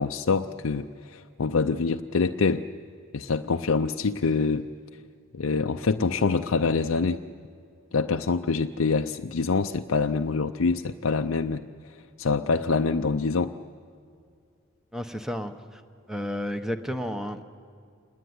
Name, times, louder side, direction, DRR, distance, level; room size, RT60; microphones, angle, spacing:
voice 1, 0.0-2.6 3.1-4.7 5.3-7.2 7.9-11.6 12.2-13.5, left 4 dB, 80° left, 6 dB, 0.6 m, -25 dB
voice 2, 14.9-15.8 16.1-17.4, equal, ahead, 8 dB, 1.0 m, -32 dB
26.5 x 20.0 x 9.5 m, 2.4 s
head